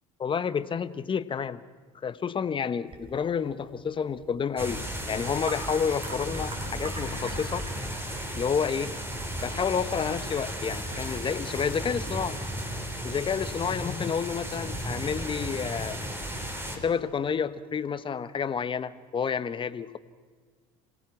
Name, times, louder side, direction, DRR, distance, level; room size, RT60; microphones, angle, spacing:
voice 1, 0.2-1.6 2.0-4.8 5.1-7.7 8.4-8.9 9.4-12.4 13.0-16.0 16.7-20.0, left 6 dB, 30° left, 14 dB, 1.1 m, -30 dB
sound 1, 2.9-11.6, right 2 dB, 35° right, 4.9 m, -45 dB
sound 2, 4.6-16.8, equal, 15° right, 3.8 m, -35 dB
27.0 x 17.0 x 6.0 m, 1.5 s
supercardioid pair, 80°, 16 cm